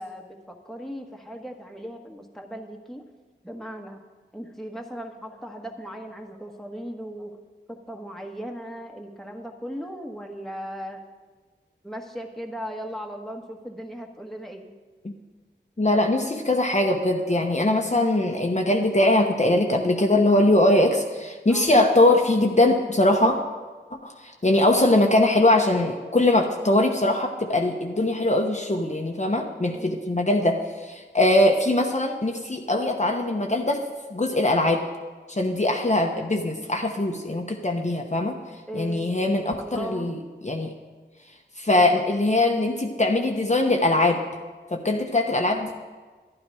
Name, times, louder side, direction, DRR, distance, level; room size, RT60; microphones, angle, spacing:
voice 1, 0.0-3.0 3.4-4.0 4.3-7.4 7.7-11.1 11.8-14.7 21.5-21.7 29.7-30.1 38.7-40.1, equal, ahead, 2 dB, 1.4 m, -37 dB
voice 2, 15.8-23.4 24.0-33.8 34.1-34.9 35.3-38.4 38.7-40.1 40.4-40.7 41.6-44.2 44.7-45.7, left 1 dB, 35° left, 2 dB, 1.0 m, -21 dB
12.0 x 11.0 x 4.9 m, 1.4 s
wide cardioid pair, 55°, 19 cm